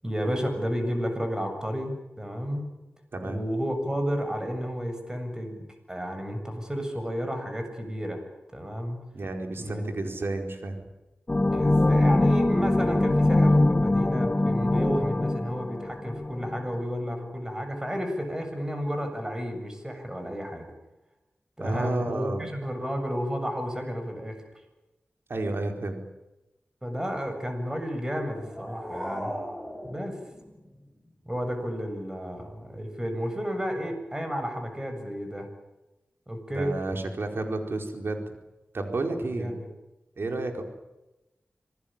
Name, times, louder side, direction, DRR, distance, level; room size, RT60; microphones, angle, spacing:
voice 1, 0.0-2.7 3.2-5.6 5.9-8.2 8.5-9.0 9.6-9.8 11.5-20.7 21.6-24.4 26.8-29.3 29.8-30.2 31.3-35.5 36.3-36.8 39.2-39.7, equal, 15° right, 6 dB, 7.4 m, -32 dB
voice 2, 9.1-10.8 21.6-22.5 25.3-26.0 36.5-38.3 38.7-39.5 40.2-40.6, right 2 dB, 65° right, 4 dB, 4.7 m, -31 dB
sound 1, 11.3-16.6, left 2 dB, 30° left, 1.1 m, -23 dB
sound 2, 28.1-31.1, equal, ahead, 6.6 m, -38 dB
27.0 x 20.0 x 9.0 m, 0.99 s
wide cardioid pair, 75°, 4 cm